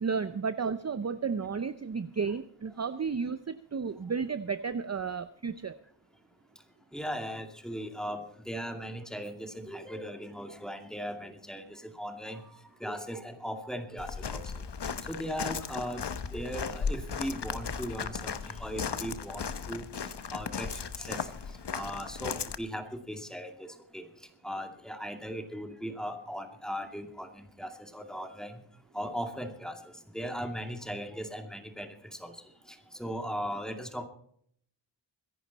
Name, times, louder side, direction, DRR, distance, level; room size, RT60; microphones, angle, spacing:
voice 1, 0.0-5.8, right 5 dB, 35° right, 12 dB, 0.6 m, -33 dB
voice 2, 6.9-14.4 14.8-19.9 20.3-21.3 21.7-23.7 23.9-24.1 24.4-28.6 28.9-29.8 30.1-32.3 32.7-34.1, equal, ahead, 5 dB, 2.4 m, -38 dB
Walk footsteps, 14.0-22.6, left 6 dB, 60° left, 1.0 m, -36 dB
24.0 x 11.0 x 4.1 m, 0.64 s
wide cardioid pair, 75°, 47 cm